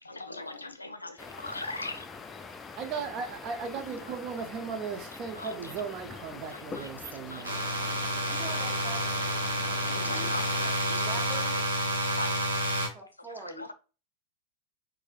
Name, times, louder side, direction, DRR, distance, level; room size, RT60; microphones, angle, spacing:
voice 1, 0.0-2.1 5.4-5.7 6.5-7.9 9.7-10.5 10.8-11.0 11.5-11.6 11.9-12.3 13.4-13.7, left 2 dB, 80° left, 0.4 m, -40 dB
sound 1, 1.2-10.7, left 4 dB, 20° left, 0.4 m, -44 dB
voice 2, 2.8-7.5, right 6 dB, 35° right, 0.6 m, -37 dB
voice 3, 3.7-4.1 8.3-9.1 10.0-10.3 10.6-11.6 12.9-13.7, right 2 dB, 15° right, 1.0 m, -44 dB
sound 2, 7.4-12.9, right 1 dB, 80° right, 0.8 m, -29 dB
4.7 x 2.7 x 2.3 m
figure-of-eight pair, 90°, 0 cm